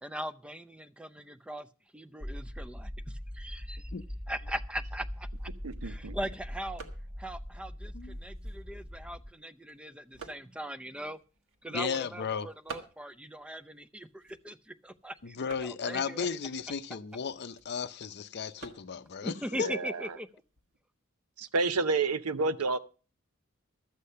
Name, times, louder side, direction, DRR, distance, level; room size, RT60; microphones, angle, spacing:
voice 1, 0.0-1.7 1.9-3.9 4.3-5.5 5.8-6.8 7.2-11.2 11.6-16.3 19.2-20.3, equal, 5° right, 0.5 m, -40 dB
sound 1, 2.2-9.3, equal, 25° right, 1.6 m, -41 dB
sound 2, 5.3-20.8, right 4 dB, 60° right, 1.5 m, -53 dB
voice 2, 5.6-6.2 19.5-20.1 21.4-22.8, right 3 dB, 85° right, 0.7 m, -30 dB
voice 3, 11.7-12.5 15.2-19.7, left 6 dB, 50° left, 0.6 m, -35 dB
12.5 x 8.4 x 5.5 m
head